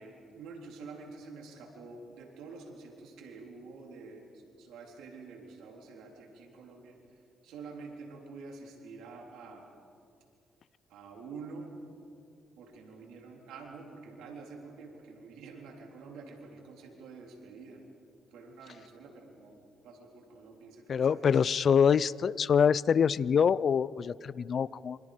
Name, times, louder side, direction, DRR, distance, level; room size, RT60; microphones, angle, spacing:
voice 1, 0.0-4.3 4.6-7.0 7.4-9.7 10.9-11.8 12.6-17.8 18.3-19.6 19.8-21.4, right 4 dB, 90° right, 1 dB, 3.8 m, -47 dB
voice 2, 20.9-25.0, left 7 dB, 50° left, 21 dB, 0.5 m, -25 dB
27.5 x 26.0 x 5.1 m, 2.4 s
cardioid pair, 90°, 0 cm